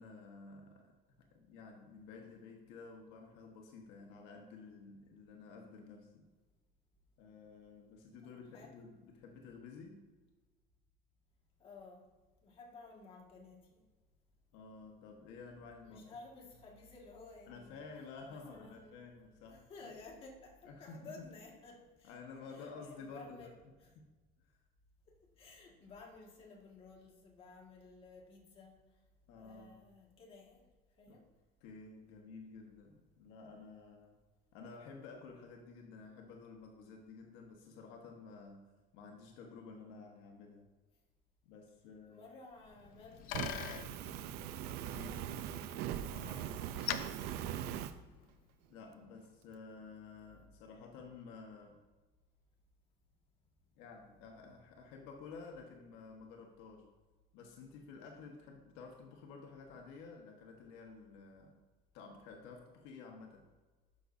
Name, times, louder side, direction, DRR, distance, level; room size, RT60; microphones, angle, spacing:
voice 1, 0.0-6.3 7.2-10.1 14.5-16.2 17.5-19.9 20.6-21.3 22.0-23.5 24.0-24.1 24.4-24.5 29.3-29.8 31.1-31.2 31.6-34.2 34.5-40.7 41.4-42.3 44.7-45.3 46.0-46.5 48.7-51.8 53.7-56.9 57.3-61.6 61.9-63.5, left 4 dB, 80° left, 2 dB, 1.4 m, -52 dB
voice 2, 8.2-8.8 11.6-12.1 12.4-13.8 15.8-17.9 18.3-18.9 19.5-22.2 22.5-23.5 23.8-24.0 25.1-28.8 29.4-30.6 31.0-31.2 42.1-43.8 44.9-45.7 46.3-46.6, left 3 dB, 35° left, -1 dB, 1.9 m, -55 dB
Bicycle, 42.6-48.4, left 11 dB, 55° left, 0.6 m, -45 dB
Fire, 43.3-47.9, right 10 dB, 70° right, 0.6 m, -41 dB
12.0 x 6.5 x 2.7 m, 1.3 s
cardioid pair, 155°, 17 cm